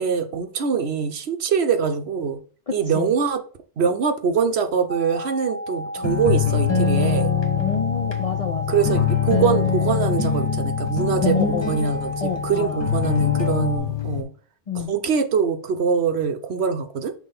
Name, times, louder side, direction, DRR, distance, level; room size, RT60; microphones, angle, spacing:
voice 1, 0.0-2.4 2.7-3.4 3.8-7.3 8.7-11.4 11.7-14.3 14.7-17.1, right 6 dB, 65° right, 8 dB, 1.0 m, -23 dB
voice 2, 2.7-3.1 7.6-9.0 11.2-11.7 12.2-12.8 14.7-14.9, left 5 dB, 50° left, 3 dB, 0.4 m, -29 dB
sound 1, 4.9-13.8, equal, 65° left, 1.5 m, -33 dB
sound 2, 6.0-14.2, left 7 dB, 25° left, 0.8 m, -23 dB
6.0 x 3.1 x 5.3 m, 0.42 s
omnidirectional pair, 1.2 m